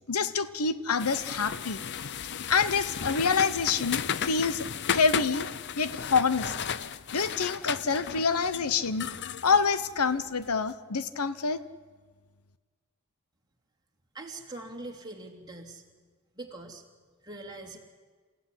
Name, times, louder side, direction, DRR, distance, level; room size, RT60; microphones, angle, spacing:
voice 1, 0.1-1.8 2.5-5.5 5.8-6.5 7.1-9.1 9.4-11.6, left 5 dB, 85° left, 14 dB, 1.0 m, -27 dB
sound 1, 1.0-10.5, left 8 dB, 50° left, 0.7 m, -35 dB
voice 2, 14.1-15.8 16.3-16.8 17.2-17.8, right 2 dB, 20° right, 0 dB, 3.1 m, -42 dB
28.0 x 16.0 x 10.0 m, 1.5 s
head